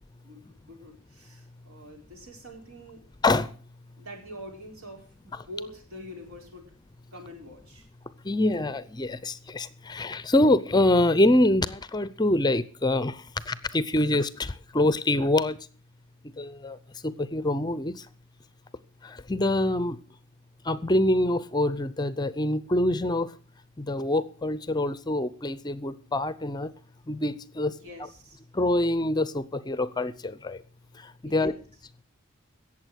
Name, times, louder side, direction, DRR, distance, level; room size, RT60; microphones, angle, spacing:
voice 1, 0.2-3.0 4.0-6.7 7.1-7.9 27.7-28.4 31.2-31.6, equal, 75° right, 4.6 m, -45 dB
voice 2, 3.2-3.5 8.2-15.6 16.4-16.8 17.0-17.9 19.0-20.0 20.7-23.3 23.8-26.7 27.1-27.7 28.5-30.6 31.2-31.5, left 1 dB, 20° left, 0.6 m, -25 dB
17.5 x 7.3 x 6.3 m
head